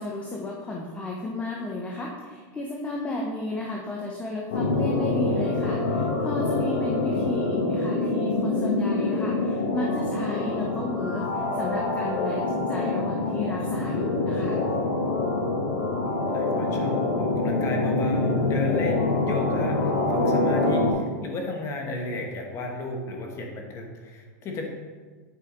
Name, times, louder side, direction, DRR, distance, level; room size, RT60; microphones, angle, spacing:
voice 1, 0.0-14.6, left 2 dB, 15° left, -1 dB, 0.7 m, -33 dB
sound 1, 4.5-20.9, left 2 dB, 80° left, 1.2 m, -25 dB
voice 2, 16.0-24.7, left 1 dB, 30° left, 2 dB, 1.1 m, -33 dB
8.5 x 4.9 x 3.7 m, 1.5 s
supercardioid pair, 150°, 10 cm